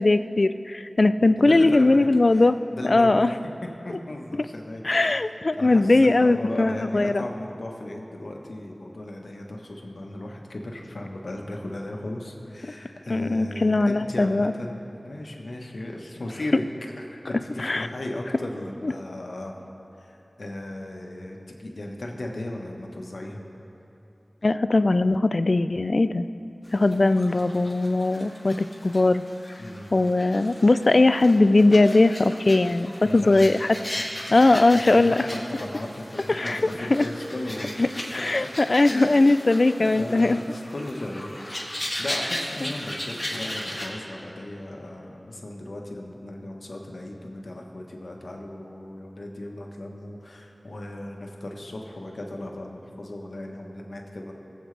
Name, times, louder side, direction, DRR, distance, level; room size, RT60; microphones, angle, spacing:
voice 1, 0.0-2.6 2.9-3.3 4.8-7.2 13.1-14.5 17.6-17.9 18.8-18.9 24.4-26.3 26.7-29.2 29.9-33.8 34.3-35.1 36.3-36.6 36.9-37.0 37.8-40.4, left 2 dB, 60° left, 12 dB, 0.3 m, -20 dB
voice 2, 1.2-2.4 2.7-3.4 3.8-5.2 5.5-16.6 17.0-19.5 20.0-23.4 29.6-30.0 33.0-33.5 34.3-34.4 34.7-37.8 38.4-38.5 38.8-39.2 39.8-41.7 42.0-54.3, left 1 dB, 80° left, 0 dB, 1.2 m, -36 dB
sound 1, 26.6-43.9, left 1 dB, 20° left, 1.9 m, -37 dB
20.5 x 7.9 x 3.3 m, 2.9 s
wide cardioid pair, 65°, 0 cm